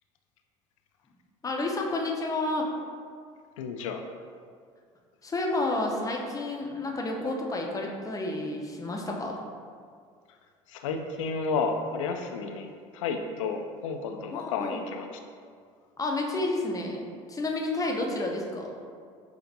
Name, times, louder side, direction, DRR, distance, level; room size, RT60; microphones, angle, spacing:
voice 1, 1.4-2.7 5.2-9.4 14.3-14.8 16.0-18.7, left 2 dB, 20° left, 0 dB, 0.7 m, -30 dB
voice 2, 3.6-4.0 10.7-12.7 12.9-15.1, left 4 dB, 80° left, 5 dB, 0.4 m, -31 dB
5.7 x 2.5 x 2.6 m, 2.1 s
hypercardioid pair, 70°, 16 cm